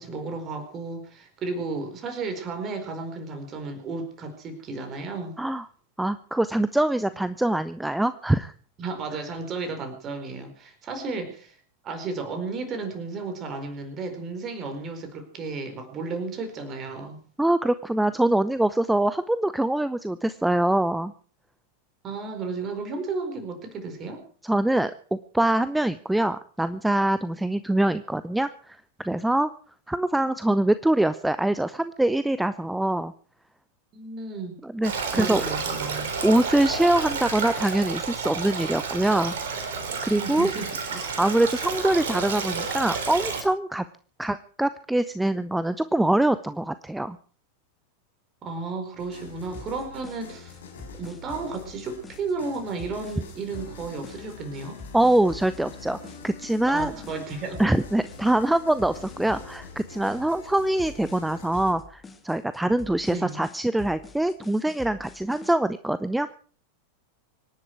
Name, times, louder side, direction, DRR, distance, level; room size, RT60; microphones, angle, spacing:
voice 1, 0.0-5.4 8.8-11.6 11.8-17.2 22.0-24.2 33.9-34.6 35.1-36.1 40.2-41.0 48.4-50.6 50.9-54.8 56.7-57.6 63.1-63.4, right 4 dB, 30° right, 7 dB, 4.6 m, -33 dB
voice 2, 6.0-8.5 17.4-21.1 24.4-29.5 29.9-33.1 34.6-35.4 36.2-39.3 40.0-40.5 41.0-43.8 44.2-47.2 54.9-56.9 57.6-66.3, right 1 dB, 5° right, 14 dB, 0.7 m, -24 dB
Stream, 34.8-43.4, right 5 dB, 60° right, 3.7 m, -30 dB
sound 1, 49.0-61.7, left 4 dB, 65° left, 5.1 m, -45 dB
sound 2, 49.5-65.5, left 3 dB, 15° left, 2.3 m, -46 dB
25.0 x 11.0 x 4.7 m, 0.43 s
figure-of-eight pair, 90°, 0 cm